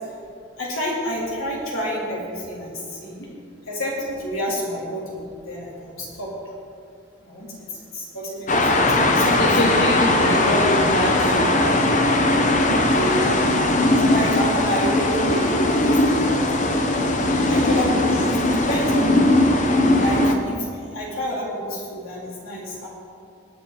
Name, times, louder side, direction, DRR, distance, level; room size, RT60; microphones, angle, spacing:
voice 1, 0.6-3.3 3.7-6.3 7.2-7.5 7.9-9.4 10.2-10.3 12.9-13.4 14.1-16.7 17.4-19.3 20.0-22.9, equal, 90° left, -5 dB, 3.8 m, -29 dB
sound 1, 8.5-20.4, left 2 dB, 35° left, 0.8 m, -19 dB
voice 2, 9.4-11.6 17.3-17.6, equal, 55° left, -2 dB, 1.4 m, -24 dB
19.0 x 8.4 x 4.3 m, 2.4 s
head